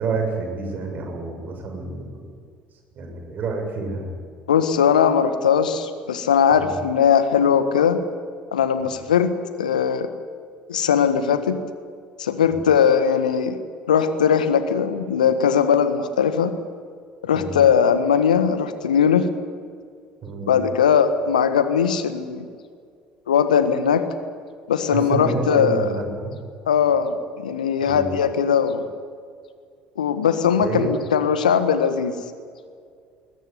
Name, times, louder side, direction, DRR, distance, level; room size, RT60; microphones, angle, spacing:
voice 1, 0.0-2.1 3.0-4.1 6.5-6.7 17.3-17.6 20.2-20.6 24.9-26.3 27.9-28.2 30.6-31.0, right 4 dB, 45° right, 3 dB, 7.1 m, -28 dB
voice 2, 4.5-8.0 8.5-9.3 9.6-10.1 10.7-11.6 12.2-13.6 13.9-16.5 17.2-19.3 20.5-22.5 23.3-24.0 24.7-26.0 26.7-28.9 30.0-32.1, left 7 dB, 80° left, 10 dB, 1.6 m, -19 dB
21.5 x 20.5 x 9.8 m, 2.1 s
figure-of-eight pair, 60°, 4 cm